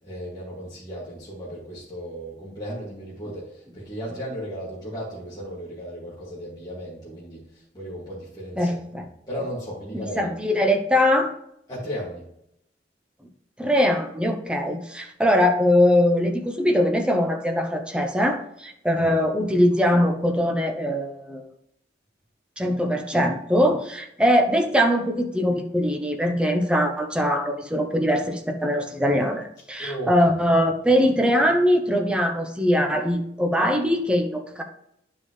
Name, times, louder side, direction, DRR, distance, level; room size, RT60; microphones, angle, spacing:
voice 1, 0.0-10.3 11.7-12.3 29.8-30.1, equal, 25° left, -9 dB, 2.3 m, -35 dB
voice 2, 8.6-9.0 9.9-11.3 13.6-21.5 22.6-34.6, equal, 5° right, 3 dB, 0.9 m, -22 dB
10.5 x 5.5 x 3.3 m, 0.76 s
head